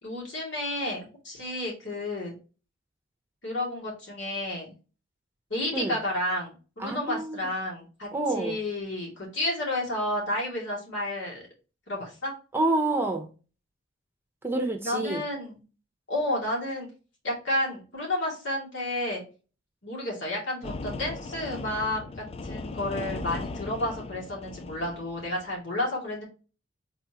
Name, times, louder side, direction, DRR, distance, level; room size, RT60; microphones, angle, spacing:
voice 1, 0.0-2.4 3.4-4.7 5.5-11.5 11.9-12.3 14.8-15.6 16.1-16.9 17.2-19.2 19.8-26.2, left 1 dB, 65° left, -2 dB, 2.5 m, -31 dB
voice 2, 6.8-7.5 8.1-8.6 12.5-13.3 14.4-15.2, right 2 dB, 10° right, 4 dB, 0.9 m, -28 dB
sound 1, 20.6-25.5, left 3 dB, 30° left, 0.3 m, -38 dB
4.3 x 4.1 x 3.0 m, 0.33 s
head